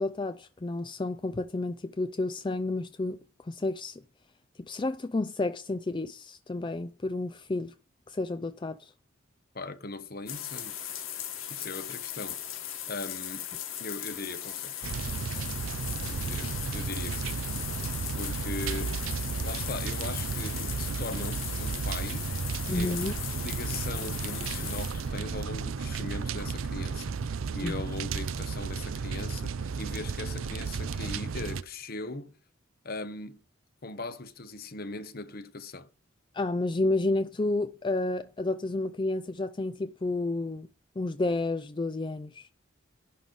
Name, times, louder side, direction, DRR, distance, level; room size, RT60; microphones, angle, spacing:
voice 1, 0.0-4.0 4.6-7.7 8.1-8.9 22.7-23.1 27.6-27.7 36.3-40.7 41.0-42.5, left 2 dB, 25° left, 0.4 m, -31 dB
voice 2, 9.5-10.7 11.5-12.4 12.9-13.5 13.8-15.0 16.0-17.4 18.1-18.9 19.4-22.3 22.7-23.0 23.4-32.3 32.8-33.4 33.8-35.9, left 3 dB, 50° left, 1.0 m, -39 dB
sound 1, 10.3-25.2, left 10 dB, 85° left, 1.6 m, -38 dB
sound 2, 14.8-31.6, right 5 dB, 85° right, 0.5 m, -33 dB
11.0 x 3.9 x 6.9 m
head